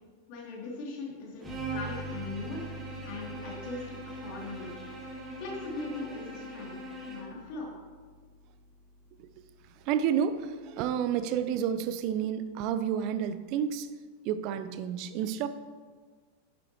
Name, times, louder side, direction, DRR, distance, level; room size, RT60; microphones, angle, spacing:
voice 1, 0.3-2.6 3.0-3.8 4.2-4.7 5.4-7.7, left 3 dB, 45° left, -3 dB, 3.0 m, -40 dB
sound 1, 1.4-10.7, equal, ahead, 2.4 m, -47 dB
Bowed string instrument, 1.4-7.4, right 2 dB, 15° right, 2.5 m, -41 dB
voice 2, 9.9-13.9 14.2-15.5, right 8 dB, 40° right, 12 dB, 0.6 m, -30 dB
11.0 x 9.6 x 3.1 m, 1.5 s
figure-of-eight pair, 90°, 0 cm